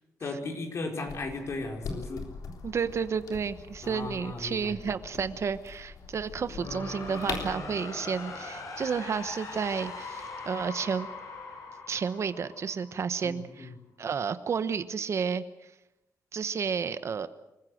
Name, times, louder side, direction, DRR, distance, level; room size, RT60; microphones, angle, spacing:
voice 1, 0.2-2.2 3.8-4.8 13.2-13.7, left 3 dB, 50° left, 3 dB, 4.8 m, -36 dB
sound 1, 1.1-7.6, left 5 dB, 85° left, 3.7 m, -42 dB
voice 2, 2.6-11.1 11.9-13.7 14.0-15.4 16.3-17.3, right 6 dB, 50° right, 12 dB, 1.1 m, -31 dB
sound 2, 6.3-13.2, left 3 dB, 70° left, 5.6 m, -41 dB
28.0 x 15.5 x 7.9 m, 0.94 s
cardioid pair, 115°, 6 cm